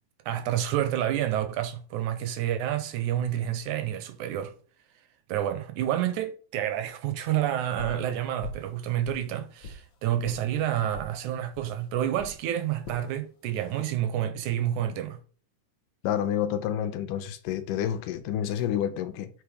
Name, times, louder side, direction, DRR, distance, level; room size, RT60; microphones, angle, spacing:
voice 1, 0.3-4.5 5.3-15.2, right 11 dB, 75° right, 2.0 m, -29 dB
sound 1, 7.8-8.1 8.4-8.7 9.0-9.8 10.2-10.4 10.9-11.1 11.6-11.7 12.2-12.4 12.8-13.0 13.6-14.0, left 3 dB, 70° left, 1.1 m, -41 dB
voice 2, 16.0-19.3, left 10 dB, 85° left, 2.3 m, -29 dB
7.0 x 4.5 x 4.9 m
omnidirectional pair, 3.8 m